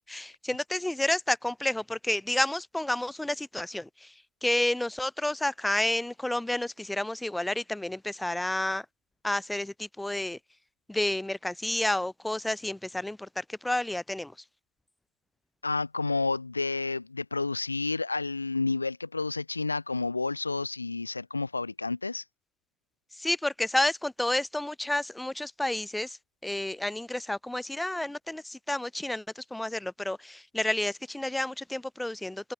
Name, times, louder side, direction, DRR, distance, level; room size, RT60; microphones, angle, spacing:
voice 1, 0.1-4.1 4.4-8.8 9.2-10.4 10.9-14.3 23.2-26.2 26.4-32.5, left 1 dB, 10° left, 5.1 m, -30 dB
voice 2, 15.6-22.2, left 3 dB, 90° left, 4.1 m, -30 dB
open air
figure-of-eight pair, 45°, 0 cm